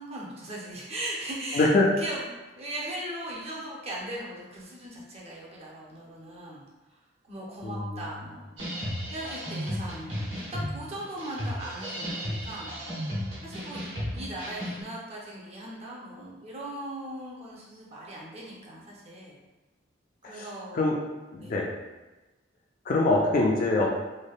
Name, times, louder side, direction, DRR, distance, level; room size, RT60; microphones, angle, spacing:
voice 1, 0.0-1.7 2.0-2.2 2.6-6.6 7.2-8.6 9.1-12.8 13.4-19.4 20.2-20.8 21.4-21.6, right 1 dB, 30° right, -4 dB, 0.6 m, -39 dB
voice 2, 1.5-1.9 7.6-7.9 20.3-20.4 20.7-21.0 21.4-21.7 22.9-23.9, left 2 dB, 45° left, -1 dB, 0.3 m, -23 dB
sound 1, 8.6-14.8, equal, 90° right, 1.1 m, -34 dB
3.2 x 2.1 x 2.3 m, 1.1 s
head